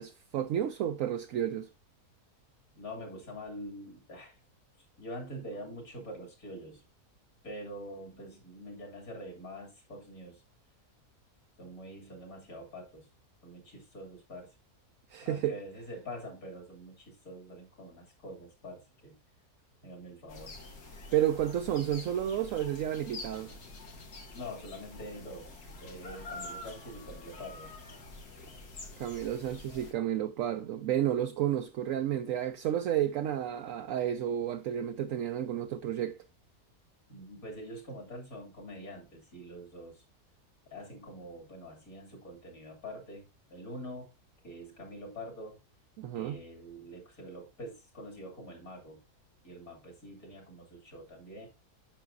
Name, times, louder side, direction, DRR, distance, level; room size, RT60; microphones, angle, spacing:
voice 1, 0.0-1.7 15.1-15.6 21.1-23.5 29.0-36.2 46.0-46.4, right 10 dB, 70° right, 0.9 m, -31 dB
voice 2, 2.7-4.4 5.0-6.8 7.4-10.4 11.6-13.1 13.4-14.5 15.2-19.2 19.8-20.6 24.3-25.5 25.8-27.7 37.1-40.0 40.7-43.2 43.5-44.1 44.4-45.6 46.1-49.0 49.4-51.5, equal, 65° left, 3.1 m, -45 dB
sound 1, 20.3-29.9, left 2 dB, 85° left, 2.2 m, -47 dB
8.7 x 6.2 x 2.5 m
omnidirectional pair, 1.7 m